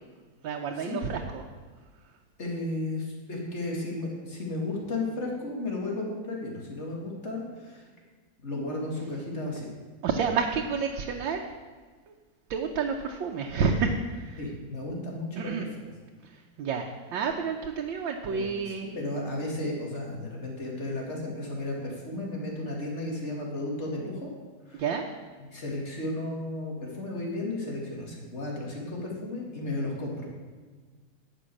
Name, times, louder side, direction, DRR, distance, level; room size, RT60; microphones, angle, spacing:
voice 1, 0.4-1.4 10.0-11.4 12.1-12.2 12.5-14.4 15.4-15.7 16.2-18.9 24.7-25.0, right 5 dB, 85° right, 1 dB, 1.6 m, -30 dB
voice 2, 2.4-7.9 8.4-9.7 14.4-15.7 18.3-18.5 18.8-24.3 24.7-24.8 25.4-30.3, left 2 dB, 35° left, -2 dB, 2.7 m, -34 dB
11.5 x 6.1 x 8.5 m, 1.5 s
omnidirectional pair, 2.0 m